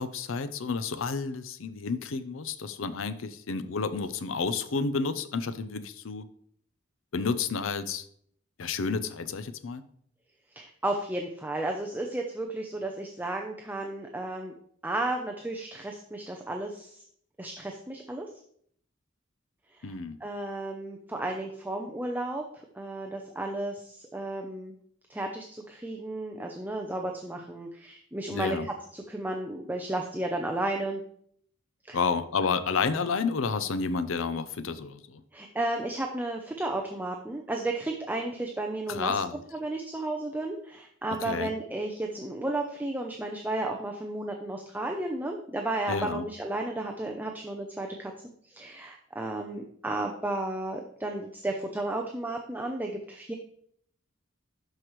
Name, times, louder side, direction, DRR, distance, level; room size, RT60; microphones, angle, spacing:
voice 1, 0.0-6.2 7.1-8.0 8.6-9.8 19.8-20.2 28.3-28.7 31.9-35.2 38.9-39.4 41.2-41.5 45.9-46.3, left 4 dB, 70° left, 13 dB, 0.6 m, -30 dB
voice 2, 10.6-14.5 14.8-17.0 17.4-18.3 19.8-19.9 20.2-22.4 22.8-24.7 25.1-31.0 31.9-32.0 35.3-39.1 39.5-48.1 48.5-53.3, right 2 dB, 10° right, 2 dB, 0.5 m, -33 dB
12.0 x 4.9 x 3.1 m, 0.65 s
head